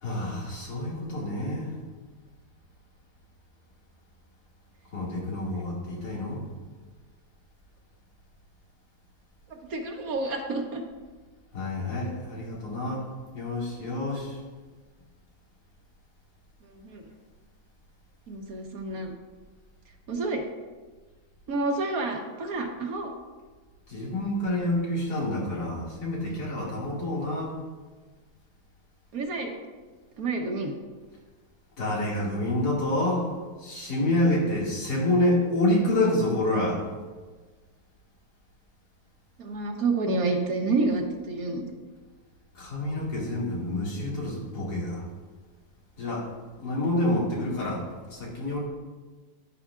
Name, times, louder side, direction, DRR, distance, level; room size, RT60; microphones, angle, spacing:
voice 1, 0.0-1.7 4.9-6.4 11.5-13.1 13.3-14.4 23.9-27.5 31.8-33.3 33.6-36.8 42.5-45.0 46.0-46.3 46.6-48.6, left 1 dB, 90° left, -5 dB, 2.8 m, -28 dB
voice 2, 9.7-10.8 16.8-17.0 18.3-19.1 20.1-20.4 21.5-23.1 29.1-29.5 30.2-30.7 39.4-41.7, right 3 dB, 65° right, 3 dB, 1.4 m, -29 dB
10.5 x 10.0 x 2.5 m, 1.4 s
omnidirectional pair, 1.7 m